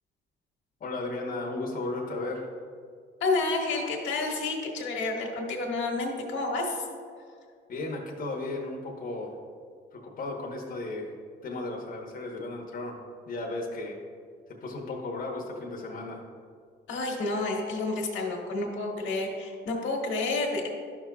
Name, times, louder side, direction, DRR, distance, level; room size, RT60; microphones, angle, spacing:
voice 1, 0.8-2.5 7.7-9.3 9.9-11.1 11.4-13.0 13.2-14.0 14.5-16.2, left 2 dB, 45° left, 0 dB, 1.1 m, -35 dB
voice 2, 3.2-6.8 16.9-20.7, left 3 dB, 75° left, 0 dB, 1.4 m, -30 dB
11.0 x 6.0 x 2.3 m, 2.1 s
cardioid pair, 90°, 20 cm